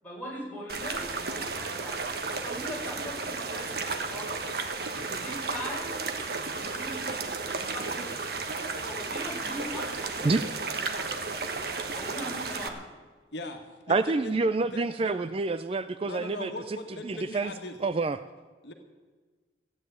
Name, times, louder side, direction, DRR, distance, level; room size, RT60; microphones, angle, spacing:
voice 1, 0.0-2.1 2.4-4.5 5.0-5.9 6.5-7.2 7.5-8.1 8.8-11.5 11.9-12.8, equal, 10° left, -6 dB, 6.4 m, -41 dB
sound 1, 0.7-12.7, right 4 dB, 60° right, 1.4 m, -33 dB
voice 2, 13.3-14.0 14.2-14.4 14.7-15.1 16.0-17.8 18.6-18.7, left 2 dB, 70° left, 4 dB, 1.6 m, -39 dB
voice 3, 13.9-16.8 17.0-17.5 17.8-18.2, right 3 dB, 30° right, 12 dB, 0.4 m, -28 dB
15.0 x 9.8 x 9.1 m, 1.4 s
head